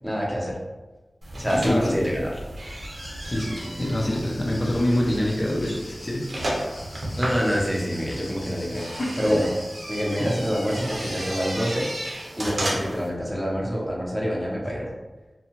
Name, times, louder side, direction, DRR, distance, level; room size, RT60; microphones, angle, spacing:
voice 1, 0.0-0.6 1.3-2.3 7.2-8.9 9.2-9.5 9.9-11.9 12.3-14.9, equal, ahead, -4 dB, 0.7 m, -26 dB
sound 1, 1.2-13.1, right 1 dB, 80° right, 0.7 m, -34 dB
voice 2, 1.5-2.0 3.2-6.2 9.0-9.1, left 1 dB, 45° left, -2 dB, 0.6 m, -25 dB
sound 2, 2.9-11.5, left 1 dB, 90° left, 0.9 m, -43 dB
2.7 x 2.3 x 2.9 m, 1.2 s
wide cardioid pair, 60°, 0 cm